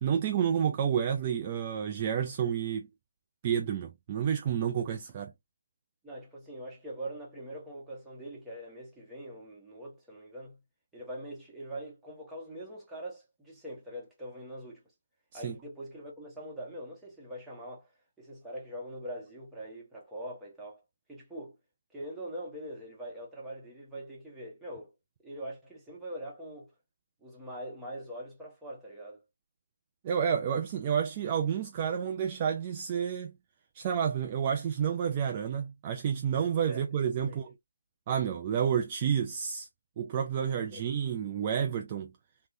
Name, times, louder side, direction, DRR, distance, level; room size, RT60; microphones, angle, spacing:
voice 1, 0.0-2.9 3.4-5.3 15.3-15.5 30.0-33.3 33.7-37.5 38.1-39.7 40.0-42.1, right 8 dB, 20° right, 0.4 m, -30 dB
voice 2, 6.0-10.6 10.9-14.8 15.3-17.9 18.2-20.8 21.1-21.6 21.9-24.9 25.2-26.7 27.2-29.2 36.6-36.9 37.2-37.4 40.7-40.9, right 1 dB, 5° right, 1.0 m, -43 dB
3.6 x 2.3 x 2.7 m
figure-of-eight pair, 165°, 0 cm